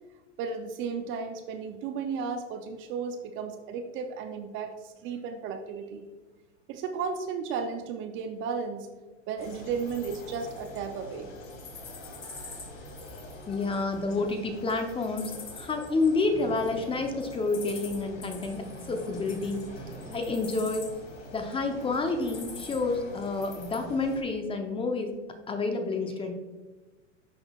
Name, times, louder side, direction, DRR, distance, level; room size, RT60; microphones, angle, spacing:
voice 1, 0.4-6.0 6.7-8.9 9.3-11.3, right 5 dB, 35° right, 6 dB, 0.5 m, -34 dB
sound 1, 9.4-24.2, left 2 dB, 85° left, 2.0 m, -44 dB
voice 2, 13.5-19.7 20.1-20.9 21.3-25.2 25.5-26.3, left 3 dB, 15° left, 4 dB, 0.6 m, -29 dB
sound 2, 16.3-17.2 17.7-17.8 18.1-18.2 18.4-20.7 21.0-22.0, right 2 dB, 10° right, 1.5 m, -46 dB
11.5 x 3.9 x 2.3 m, 1.2 s
hypercardioid pair, 115°, 36 cm